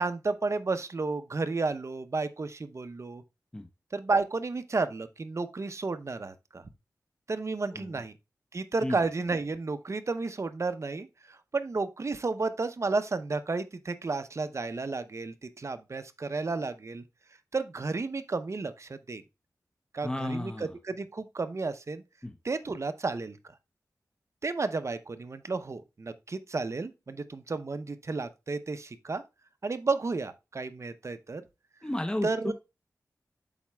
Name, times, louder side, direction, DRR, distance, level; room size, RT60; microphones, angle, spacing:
voice 1, 0.0-3.2 3.9-6.6 7.3-8.1 8.5-17.0 17.5-19.2 19.9-22.0 22.4-23.4 24.4-29.2 29.6-31.4 32.2-32.5, right 3 dB, 50° right, 0.7 m, -32 dB
voice 2, 20.0-20.7 22.2-22.3 31.8-32.5, left 1 dB, 10° left, 0.7 m, -33 dB
12.0 x 4.1 x 2.2 m
wide cardioid pair, 65°, 6 cm